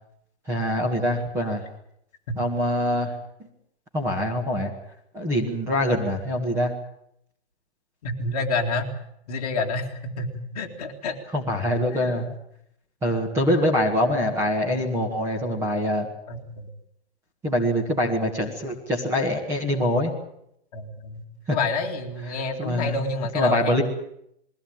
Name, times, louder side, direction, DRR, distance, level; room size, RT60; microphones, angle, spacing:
voice 1, 0.5-1.6 2.4-3.1 3.9-4.7 5.1-6.7 11.3-12.3 13.0-16.1 17.4-20.1 21.5-21.6 22.6-23.1 23.3-23.8, equal, 10° right, 0 dB, 1.8 m, -24 dB
voice 2, 8.0-8.9 9.3-11.2 11.9-12.3 16.3-16.7 20.7-21.2 21.5-23.8, left 3 dB, 35° left, 2 dB, 2.5 m, -29 dB
22.0 x 17.0 x 8.9 m, 0.74 s
hypercardioid pair, 175°, 33 cm